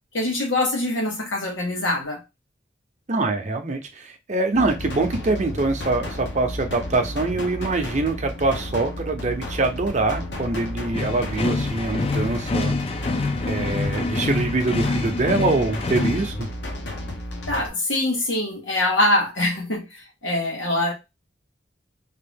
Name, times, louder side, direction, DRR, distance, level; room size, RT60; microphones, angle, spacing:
voice 1, 0.1-2.2 17.5-19.9 20.2-20.9, left 1 dB, 90° left, 1.3 m, -23 dB
voice 2, 3.1-12.7 13.4-16.5, right 3 dB, 40° right, 0.6 m, -24 dB
sound 1, 4.5-17.7, left 1 dB, 65° left, 0.8 m, -33 dB
sound 2, 10.9-16.3, left 3 dB, 30° left, 0.4 m, -26 dB
3.5 x 2.5 x 3.5 m
head